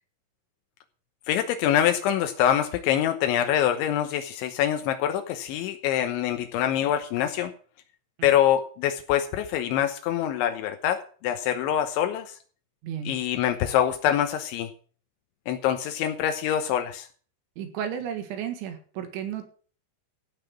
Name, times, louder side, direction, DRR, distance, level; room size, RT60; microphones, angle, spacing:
voice 1, 1.3-7.5 8.2-12.4 13.1-14.7 15.5-17.1, left 10 dB, 85° left, 7 dB, 3.4 m, -25 dB
voice 2, 12.8-13.2 17.6-19.5, right 8 dB, 80° right, 7 dB, 4.1 m, -33 dB
15.5 x 5.8 x 7.2 m, 0.42 s
omnidirectional pair, 5.3 m